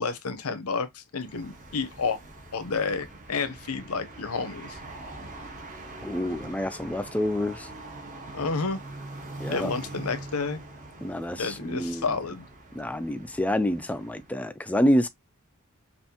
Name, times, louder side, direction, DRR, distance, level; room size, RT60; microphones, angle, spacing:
voice 1, 0.0-2.2 2.5-4.8 8.3-8.8 9.5-10.6 11.4-12.4, left 4 dB, 85° left, 0.8 m, -30 dB
sound 1, 1.1-14.4, right 2 dB, 35° right, 1.2 m, -43 dB
voice 2, 6.0-7.7 9.4-9.7 11.0-12.1 12.7-15.1, equal, 5° left, 0.3 m, -27 dB
5.4 x 2.5 x 2.8 m
head